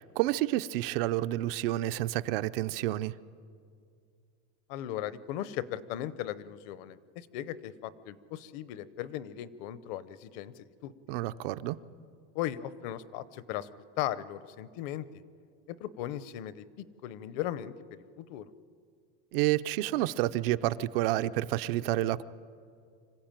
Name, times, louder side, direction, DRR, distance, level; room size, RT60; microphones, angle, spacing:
voice 1, 0.0-3.1 11.1-11.8 19.3-22.2, right 15 dB, 60° right, 13 dB, 0.6 m, -29 dB
voice 2, 4.7-10.9 12.3-13.7 14.0-15.1 15.7-16.6 17.0-17.7 18.2-18.5, left 12 dB, 45° left, 16 dB, 0.8 m, -37 dB
26.0 x 15.0 x 9.0 m, 2.3 s
supercardioid pair, 175°, 33 cm